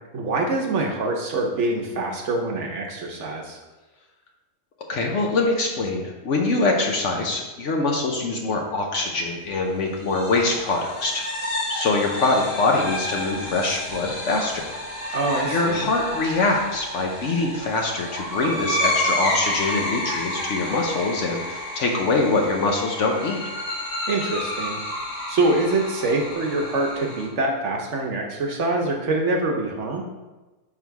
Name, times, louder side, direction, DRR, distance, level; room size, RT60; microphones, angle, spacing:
voice 1, 0.1-3.6 15.1-15.9 24.1-24.8 25.3-30.0, right 2 dB, 60° right, 1 dB, 0.9 m, -25 dB
voice 2, 4.9-11.3 11.7-14.7 15.1-15.2 15.5-23.4, left 3 dB, 60° left, 1 dB, 0.9 m, -24 dB
sound 1, 10.0-27.3, left 1 dB, 85° left, 2.2 m, -30 dB
5.7 x 3.6 x 4.5 m, 1.2 s
omnidirectional pair, 1.7 m